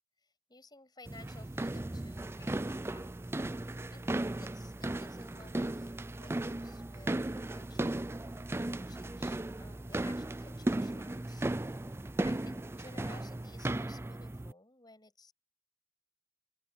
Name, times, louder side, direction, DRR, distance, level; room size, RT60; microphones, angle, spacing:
voice 1, 0.2-3.1 3.9-8.1 8.7-11.5 12.2-15.3, left 2 dB, 20° left, 7.8 m, -57 dB
sound 1, 1.1-14.5, right 1 dB, 10° right, 0.3 m, -36 dB
open air
head